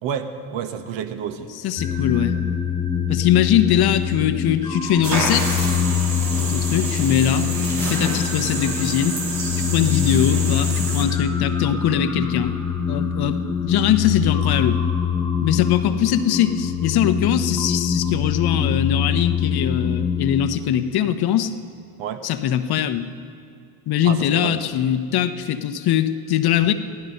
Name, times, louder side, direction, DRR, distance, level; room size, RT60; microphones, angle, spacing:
voice 1, 0.0-1.5 22.0-22.3 24.0-24.6, right 8 dB, 65° right, 9 dB, 1.3 m, -30 dB
voice 2, 1.6-2.4 3.1-5.7 6.4-7.5 7.8-9.2 9.7-12.5 12.9-14.8 15.4-21.5 22.2-23.1 23.9-26.7, left 10 dB, 50° left, 10 dB, 0.9 m, -21 dB
sound 1, 1.8-20.4, left 7 dB, 5° left, 1.2 m, -24 dB
sound 2, 5.0-11.1, right 3 dB, 85° right, 2.7 m, -28 dB
15.5 x 12.5 x 5.5 m, 2.5 s
supercardioid pair, 80°, 48 cm